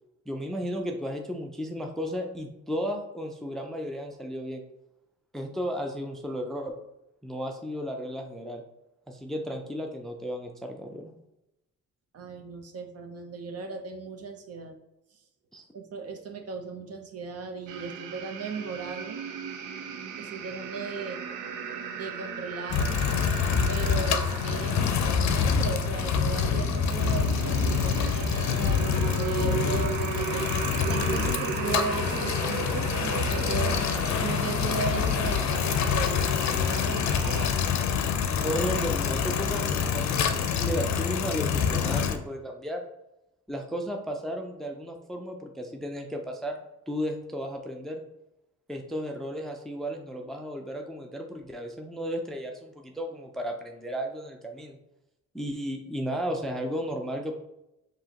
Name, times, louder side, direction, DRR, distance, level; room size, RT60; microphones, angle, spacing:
voice 1, 0.3-4.6 5.3-6.7 7.2-8.6 9.1-11.1 15.5-15.6 38.4-42.8 43.5-48.0 48.7-54.8 55.3-57.3, equal, ahead, 3 dB, 0.4 m, -34 dB
voice 2, 12.1-14.7 15.7-19.2 20.2-21.2 22.0-23.1 23.7-30.5 30.8-33.8 34.2-37.7, right 5 dB, 55° right, 4 dB, 0.8 m, -37 dB
sound 1, 17.7-37.5, right 6 dB, 90° right, 0.6 m, -36 dB
sound 2, 22.7-42.2, left 6 dB, 65° left, 0.5 m, -26 dB
4.8 x 2.8 x 2.9 m, 0.89 s
cardioid pair, 90°, 30 cm